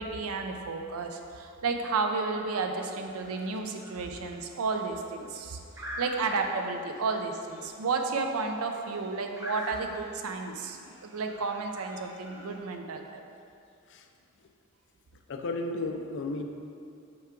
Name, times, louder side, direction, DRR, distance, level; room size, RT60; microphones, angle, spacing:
voice 1, 0.0-5.6 6.0-13.3, right 4 dB, 90° right, 4 dB, 0.5 m, -32 dB
sound 1, 2.8-12.6, equal, 15° right, 0.6 m, -46 dB
voice 2, 15.3-16.4, left 2 dB, 60° left, 5 dB, 0.4 m, -34 dB
5.9 x 4.7 x 3.7 m, 2.5 s
head